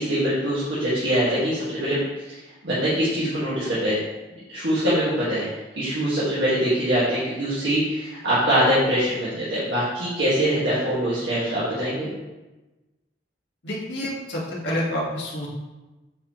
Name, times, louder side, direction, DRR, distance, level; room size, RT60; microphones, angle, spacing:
voice 1, 0.0-2.4 2.6-4.0 4.5-5.4 5.8-12.1, equal, 75° right, -10 dB, 1.8 m, -23 dB
voice 2, 13.6-15.5, left 1 dB, 70° left, -5 dB, 1.8 m, -28 dB
8.5 x 4.2 x 3.1 m, 1.1 s
head